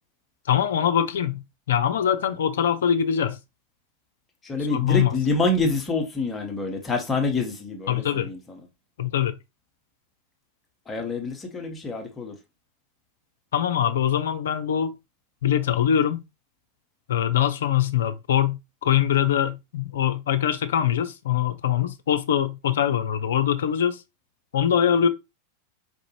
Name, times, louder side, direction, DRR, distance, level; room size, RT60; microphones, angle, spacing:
voice 1, 0.5-3.4 4.7-5.2 7.9-8.3 9.0-9.3 13.5-15.0 15.4-16.2 17.1-24.0 24.5-25.1, left 9 dB, 60° left, 0.4 m, -23 dB
voice 2, 4.4-8.6 10.9-12.3, left 3 dB, 15° left, 0.9 m, -27 dB
4.6 x 2.5 x 2.9 m
figure-of-eight pair, 90°, 0 cm